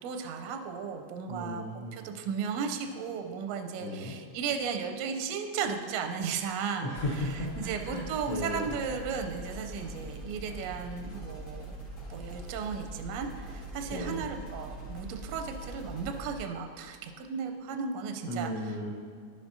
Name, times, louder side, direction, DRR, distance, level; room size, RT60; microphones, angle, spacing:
voice 1, 0.0-1.6 1.9-6.9 7.2-11.7 12.1-18.5, right 6 dB, 80° right, 5 dB, 1.6 m, -35 dB
voice 2, 1.3-2.1 3.8-4.2 6.8-8.6 13.9-14.2 18.3-18.9, left 1 dB, 80° left, -5 dB, 0.9 m, -35 dB
sound 1, 7.0-16.4, right 2 dB, 45° left, 1.3 m, -42 dB
11.5 x 7.0 x 2.7 m, 2.2 s
omnidirectional pair, 3.3 m